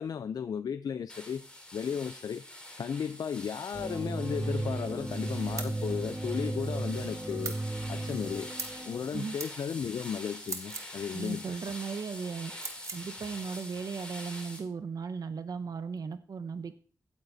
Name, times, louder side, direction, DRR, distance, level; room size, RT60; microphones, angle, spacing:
voice 1, 0.0-1.5 1.7-2.4 2.8-7.6 7.9-8.5 8.8-11.6, left 7 dB, 85° left, 0.4 m, -35 dB
sound 1, 1.1-14.6, left 1 dB, 15° left, 2.9 m, -45 dB
sound 2, 3.7-9.2, right 2 dB, 35° right, 4.6 m, -35 dB
sound 3, 5.6-5.8 7.4-7.6 8.6-8.8 9.4-9.5 10.4-10.9 12.6-13.0, right 4 dB, 50° right, 1.2 m, -38 dB
voice 2, 11.1-12.5 12.9-16.7, right 5 dB, 75° right, 0.7 m, -36 dB
15.5 x 9.0 x 2.7 m
wide cardioid pair, 140°, 6 cm